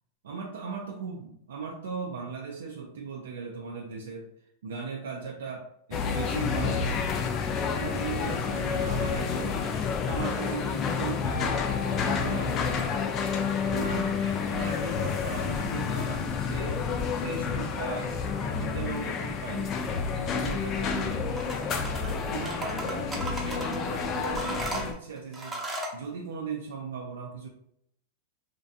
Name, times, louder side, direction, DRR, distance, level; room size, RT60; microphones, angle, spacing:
voice 1, 0.2-4.3 4.6-7.0 7.6-9.7 10.0-12.9 13.7-16.8 17.1-18.1 18.5-19.8 20.2-21.3 22.1-23.1 23.4-25.6 25.9-27.5, right 5 dB, 90° right, 0 dB, 0.4 m, -38 dB
sound 1, 5.9-24.9, left 5 dB, 30° left, 0.3 m, -29 dB
sound 2, 21.3-22.1 22.5-23.8 24.2-26.0, right 1 dB, 15° right, 0.5 m, -36 dB
2.5 x 2.2 x 2.6 m, 0.72 s
hypercardioid pair, 130°, 0 cm